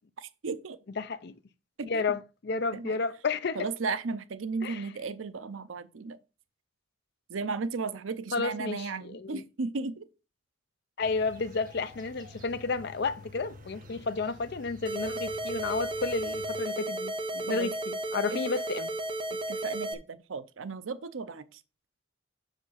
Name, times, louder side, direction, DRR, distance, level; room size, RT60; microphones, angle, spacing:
voice 1, 0.4-0.8 1.8-2.2 2.7-3.0 3.5-6.2 7.3-10.1 17.5-17.7 18.3-18.4 19.3-21.6, right 4 dB, 85° right, 0.6 m, -35 dB
voice 2, 1.0-1.3 1.9-3.7 4.6-4.9 8.3-9.4 11.0-18.9, left 4 dB, 55° left, 0.5 m, -32 dB
sound 1, 11.0-16.6, left 2 dB, 45° right, 1.3 m, -49 dB
sound 2, 14.9-19.9, right 1 dB, 25° right, 1.0 m, -34 dB
6.3 x 5.0 x 5.7 m
head